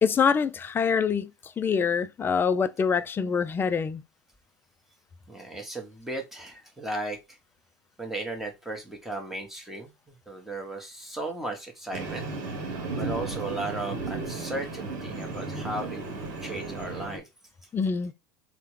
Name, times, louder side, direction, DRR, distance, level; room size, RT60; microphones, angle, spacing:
voice 1, 0.0-4.0 17.7-18.1, left 6 dB, 20° left, 0.3 m, -25 dB
voice 2, 5.3-7.4 8.0-12.3 13.0-17.3, right 2 dB, 5° right, 1.0 m, -36 dB
Train, 11.9-17.2, right 3 dB, 70° right, 0.9 m, -34 dB
3.4 x 2.1 x 3.0 m
hypercardioid pair, 100°, 11 cm